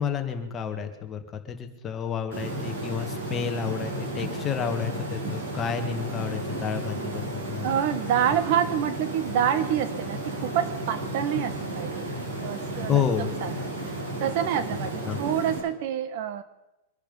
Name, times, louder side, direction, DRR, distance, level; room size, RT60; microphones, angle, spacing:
voice 1, 0.0-7.7 12.9-13.3 15.0-15.2, left 7 dB, 20° left, 5 dB, 1.6 m, -30 dB
sound 1, 2.3-15.6, right 1 dB, 75° right, 7.7 m, -33 dB
voice 2, 7.6-12.1 12.4-16.4, right 9 dB, 45° right, 13 dB, 1.1 m, -27 dB
23.5 x 10.5 x 5.4 m, 0.95 s
supercardioid pair, 160°, 0 cm